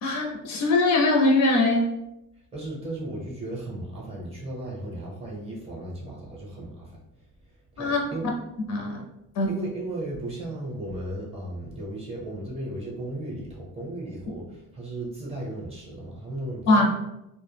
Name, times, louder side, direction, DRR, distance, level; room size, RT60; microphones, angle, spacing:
voice 1, 0.0-1.9 7.8-8.0 8.7-9.0 9.4-9.5 16.7-16.9, left 2 dB, 50° left, 0 dB, 0.4 m, -21 dB
voice 2, 2.5-7.0 7.8-8.3 9.5-16.9, right 1 dB, 15° right, -4 dB, 0.5 m, -35 dB
2.2 x 2.0 x 3.1 m, 0.89 s
cardioid pair, 160°, 38 cm